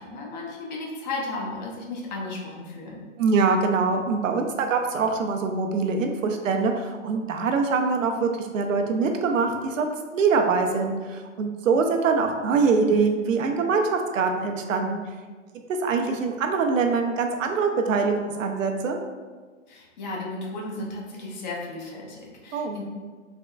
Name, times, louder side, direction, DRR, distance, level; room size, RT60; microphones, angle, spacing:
voice 1, 0.0-3.0 19.7-22.8, left 2 dB, 35° left, -2 dB, 0.5 m, -34 dB
voice 2, 3.2-15.0 15.8-19.0 22.5-22.8, right 4 dB, 75° right, 4 dB, 0.5 m, -24 dB
3.4 x 2.1 x 2.3 m, 1.4 s
figure-of-eight pair, 120°, 39 cm